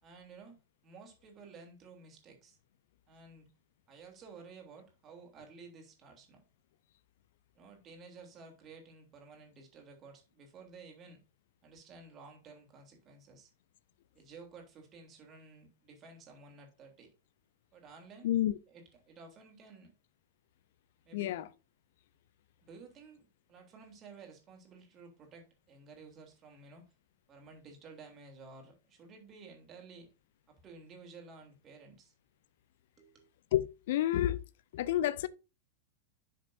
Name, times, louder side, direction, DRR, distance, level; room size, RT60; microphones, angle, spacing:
voice 1, 0.0-0.5 0.8-2.6 3.1-3.5 3.9-6.4 7.5-11.2 11.6-13.5 14.1-17.1 17.7-18.3 18.7-19.9 21.0-21.4 22.6-26.8 27.3-30.1 30.5-32.1 33.0-33.3, right 4 dB, 30° right, 3.2 m, -53 dB
voice 2, 18.2-18.5 21.1-21.4 33.5-34.4 34.7-35.3, left 12 dB, 55° left, 0.6 m, -29 dB
10.5 x 6.6 x 2.6 m
figure-of-eight pair, 90°, 0 cm